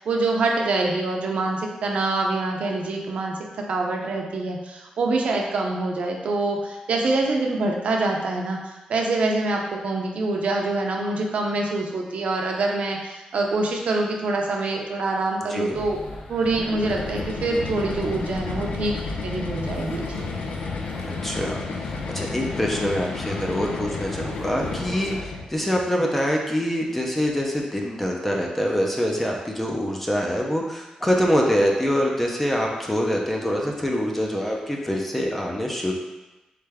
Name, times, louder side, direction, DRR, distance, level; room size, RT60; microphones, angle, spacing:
voice 1, 0.0-3.3 3.7-16.0 16.3-18.9 19.2-20.3, right 2 dB, 60° right, 0 dB, 0.6 m, -25 dB
sound 1, 15.7-25.2, left 2 dB, 50° left, 0.7 m, -39 dB
sound 2, 16.4-25.5, left 4 dB, 90° left, 0.5 m, -32 dB
voice 2, 21.0-21.6 22.1-35.9, equal, 10° left, -1 dB, 0.5 m, -25 dB
3.7 x 3.3 x 3.4 m, 1.1 s
wide cardioid pair, 165°, 2 cm